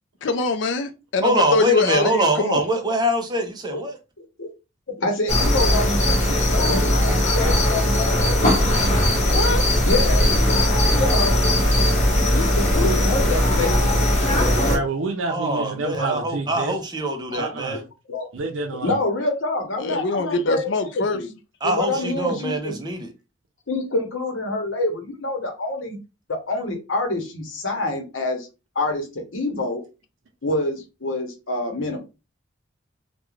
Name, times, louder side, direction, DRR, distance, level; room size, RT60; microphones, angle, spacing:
voice 1, 0.2-2.6 9.2-9.6 19.8-21.2, left 3 dB, 65° left, 0.4 m, -23 dB
voice 2, 1.2-4.0 15.3-17.8 21.6-23.1, right 1 dB, 20° right, 0.5 m, -23 dB
voice 3, 4.2-4.5 5.0-7.6 9.8-11.6 12.3-13.9 15.9-16.0 17.3-17.4 17.7-17.8 18.1-18.3 18.8-21.3 21.6-22.7 23.7-26.0 26.3-28.5 28.7-29.8 30.4-32.0, left 2 dB, 85° left, 0.9 m, -27 dB
sound 1, 5.3-14.8, left 1 dB, 40° left, 0.9 m, -19 dB
voice 4, 14.5-16.7 17.4-17.8 18.3-18.9, right 3 dB, 85° right, 0.5 m, -28 dB
2.4 x 2.2 x 3.0 m
head